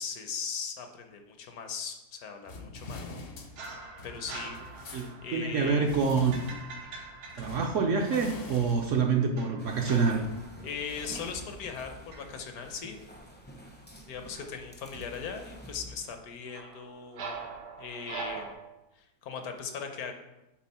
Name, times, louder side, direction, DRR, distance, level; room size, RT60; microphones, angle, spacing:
voice 1, 0.0-3.2 4.0-4.9 5.2-6.0 10.6-13.0 14.1-17.5 17.8-18.6 18.9-20.1, left 6 dB, 70° left, 6 dB, 1.2 m, -39 dB
sound 1, 2.4-12.3, left 3 dB, 50° left, 0.7 m, -45 dB
sound 2, 3.6-8.4 9.4-11.8 12.1-12.4 16.5-18.5, right 4 dB, 90° right, 1.5 m, -44 dB
voice 2, 4.9-6.3 7.4-10.2, right 5 dB, 65° right, 3 dB, 0.8 m, -26 dB
sound 3, 9.6-16.2, equal, 10° left, 0.5 m, -49 dB
8.7 x 3.9 x 4.2 m, 0.98 s
omnidirectional pair, 1.7 m